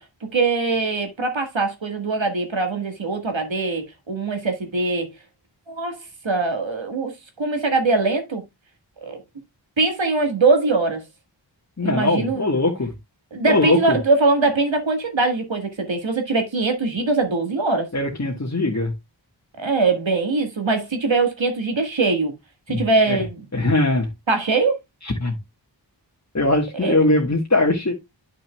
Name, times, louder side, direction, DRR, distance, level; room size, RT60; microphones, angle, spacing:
voice 1, 0.3-5.1 5.7-6.0 6.2-7.1 7.4-8.4 9.0-9.2 9.8-11.0 11.8-12.4 13.3-17.9 19.6-22.3 22.7-23.4 24.3-24.8 26.7-27.0, right 3 dB, 85° right, 1.7 m, -22 dB
voice 2, 11.8-12.9 13.4-14.0 17.9-18.9 22.7-23.2 23.5-24.1 25.0-25.4 26.3-27.9, left 2 dB, 35° left, 1.5 m, -21 dB
10.0 x 6.1 x 2.2 m
wide cardioid pair, 45°, 44 cm